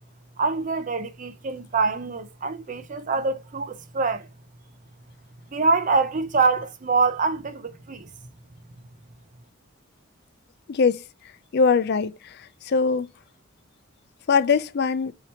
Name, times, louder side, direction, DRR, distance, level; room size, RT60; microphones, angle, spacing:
voice 1, 0.4-4.3 5.5-8.1, right 4 dB, 35° right, 0.5 m, -25 dB
voice 2, 10.7-11.0 11.5-13.1 14.3-15.1, left 5 dB, 50° left, 0.4 m, -22 dB
4.3 x 2.9 x 2.8 m
head